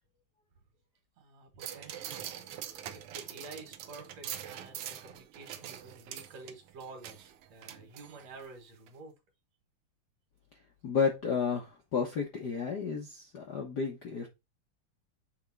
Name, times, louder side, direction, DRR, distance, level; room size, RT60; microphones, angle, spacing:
voice 1, 1.2-9.1, right 3 dB, 60° right, 2.6 m, -50 dB
sound 1, 1.6-8.5 8.9-9.0, right 10 dB, 80° right, 1.3 m, -44 dB
voice 2, 10.8-14.3, left 5 dB, 70° left, 0.9 m, -32 dB
8.0 x 3.4 x 4.6 m
omnidirectional pair, 3.4 m